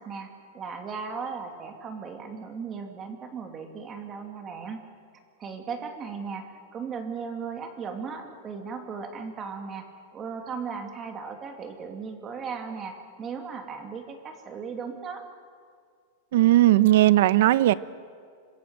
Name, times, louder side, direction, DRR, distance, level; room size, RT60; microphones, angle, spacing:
voice 1, 0.0-4.8 5.4-15.3, right 5 dB, 20° right, 5 dB, 2.6 m, -37 dB
voice 2, 16.3-17.7, right 15 dB, 60° right, 16 dB, 0.9 m, -18 dB
26.0 x 21.0 x 9.0 m, 2.1 s
supercardioid pair, 170°, 0 cm